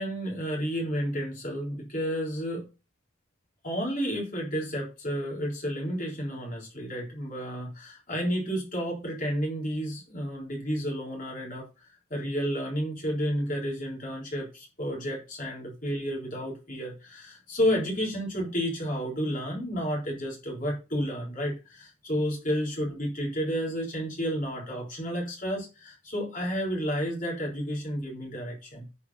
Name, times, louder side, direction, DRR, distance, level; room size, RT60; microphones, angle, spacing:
voice 1, 0.0-2.6 3.6-28.9, equal, 40° left, -2 dB, 3.8 m, -31 dB
9.5 x 4.8 x 5.5 m, 0.29 s
head